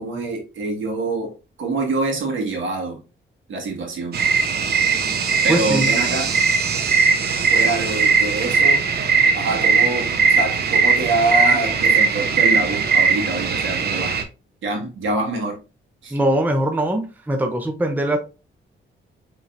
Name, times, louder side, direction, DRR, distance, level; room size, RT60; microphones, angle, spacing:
voice 1, 0.0-1.3 1.6-3.0 3.5-4.2 5.4-6.3 7.5-8.8 9.3-14.2 14.6-15.6 16.0-16.2, right 2 dB, 70° right, 1 dB, 1.7 m, -25 dB
sound 1, 4.1-14.2, right 5 dB, 50° right, 0.8 m, -19 dB
voice 2, 5.5-5.9 16.1-18.2, right 1 dB, 10° right, 4 dB, 0.6 m, -21 dB
5.0 x 3.9 x 2.6 m, 0.31 s
wide cardioid pair, 150°, 20 cm